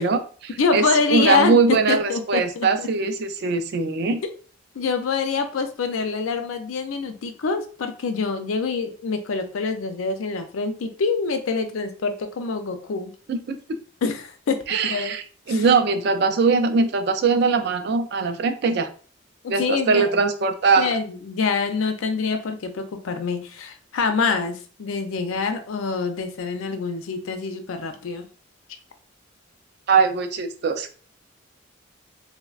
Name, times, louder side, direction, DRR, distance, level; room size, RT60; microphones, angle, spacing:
voice 1, 0.0-4.2 13.3-13.6 14.7-18.9 19.5-21.0 29.9-30.9, right 4 dB, 55° right, 9 dB, 0.3 m, -21 dB
voice 2, 0.6-2.9 4.8-13.1 14.0-15.1 15.5-15.7 19.4-20.2 20.8-28.3, left 4 dB, 90° left, 7 dB, 0.4 m, -25 dB
3.2 x 2.1 x 2.3 m, 0.40 s
head